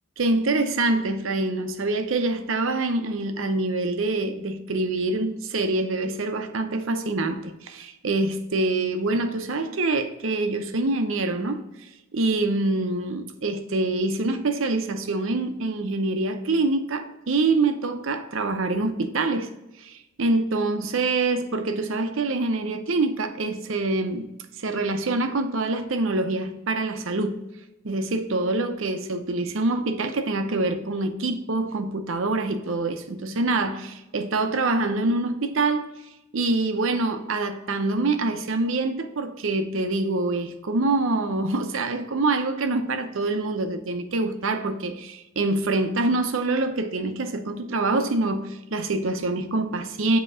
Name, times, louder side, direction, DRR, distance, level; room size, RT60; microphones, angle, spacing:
voice 1, 0.2-11.6 12.1-19.5 19.8-24.3 24.6-27.4 27.8-35.9 36.3-50.2, right 2 dB, 65° right, 0.6 m, -25 dB
7.7 x 2.9 x 4.8 m
head